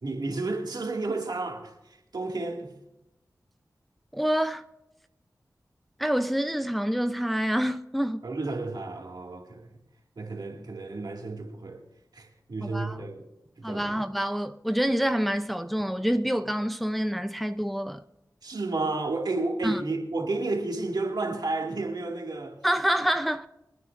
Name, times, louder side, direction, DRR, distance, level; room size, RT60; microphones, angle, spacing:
voice 1, 0.0-2.7 8.2-9.7 10.2-11.8 12.1-13.2 13.6-14.0 18.4-22.6, right 3 dB, 70° right, 2.2 m, -32 dB
voice 2, 4.1-4.6 6.0-8.2 12.6-13.0 13.6-18.0 19.6-19.8 22.6-23.5, equal, ahead, 0.6 m, -27 dB
24.0 x 9.3 x 2.6 m
cardioid pair, 50°, 7 cm